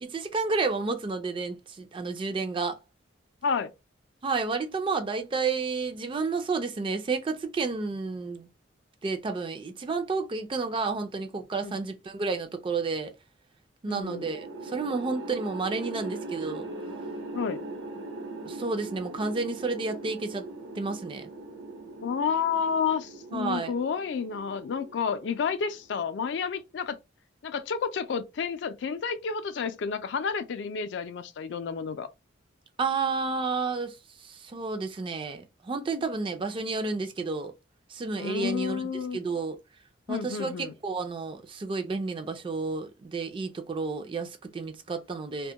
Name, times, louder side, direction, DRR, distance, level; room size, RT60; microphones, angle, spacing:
voice 1, 0.0-2.8 4.2-8.5 9.0-13.1 13.8-16.7 18.5-20.5 20.7-21.3 23.3-23.7 32.8-34.0 34.2-37.5 37.9-38.9 39.1-39.6 40.1-45.5, right 4 dB, 25° right, 0.3 m, -31 dB
voice 2, 13.9-14.3 17.3-17.6 22.0-27.0 27.4-32.1 38.2-39.2 40.1-40.7, left 6 dB, 65° left, 0.4 m, -30 dB
sound 1, 14.0-26.3, right 2 dB, 75° right, 0.8 m, -40 dB
2.2 x 2.1 x 2.7 m
head